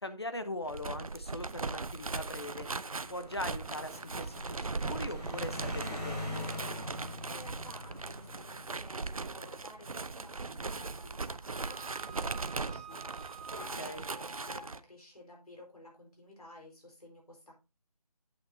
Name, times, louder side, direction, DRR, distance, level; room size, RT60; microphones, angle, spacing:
voice 1, 0.0-2.7 3.1-6.4 13.8-14.0, left 1 dB, 40° left, 10 dB, 0.8 m, -40 dB
sound 1, 0.6-14.8, right 4 dB, 60° right, 0.5 m, -39 dB
sound 2, 1.7-12.4 13.2-13.6, left 1 dB, 5° left, 1.3 m, -45 dB
voice 2, 7.3-17.5, equal, 70° left, 0 dB, 4.5 m, -54 dB
Wind instrument woodwind instrument, 10.6-14.7, right 4 dB, 15° right, 1.9 m, -50 dB
9.2 x 8.3 x 2.7 m, 0.29 s
figure-of-eight pair, 180°, 20 cm